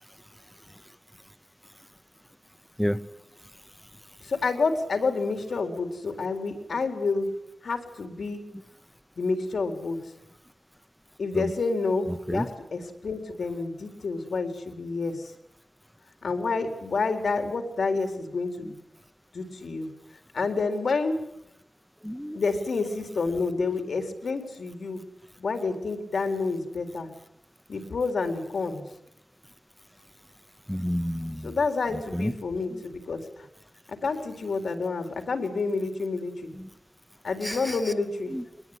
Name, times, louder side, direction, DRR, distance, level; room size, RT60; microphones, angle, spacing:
voice 1, 4.2-7.3 7.6-8.4 9.2-10.0 11.2-15.3 16.2-18.7 19.3-19.9 20.3-21.2 22.3-25.0 25.4-27.1 27.7-28.8 31.4-33.5 33.9-36.5 37.2-38.3, left 4 dB, 70° left, 6 dB, 4.0 m, -29 dB
voice 2, 22.0-22.4 30.7-31.5 32.1-32.3 37.4-37.7 38.3-38.4, equal, ahead, 11 dB, 0.9 m, -29 dB
23.0 x 20.0 x 9.9 m, 0.84 s
wide cardioid pair, 135°, 0 cm